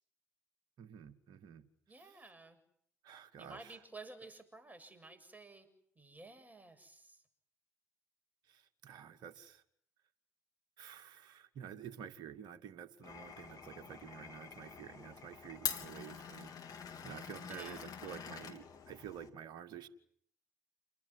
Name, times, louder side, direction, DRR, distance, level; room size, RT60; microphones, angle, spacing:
voice 1, 0.8-1.6 1.9-2.2 3.0-3.8 8.5-9.6 10.8-16.5 16.8-19.9, right 9 dB, 60° right, 9 dB, 2.3 m, -50 dB
voice 2, 1.9-2.6 3.4-5.7 6.0-7.2 17.5-18.2, right 2 dB, 20° right, 9 dB, 7.4 m, -53 dB
Glass, 13.0-19.3, left 7 dB, 50° left, 3.3 m, -45 dB
29.0 x 21.0 x 9.7 m, 0.67 s
figure-of-eight pair, 45°, 8 cm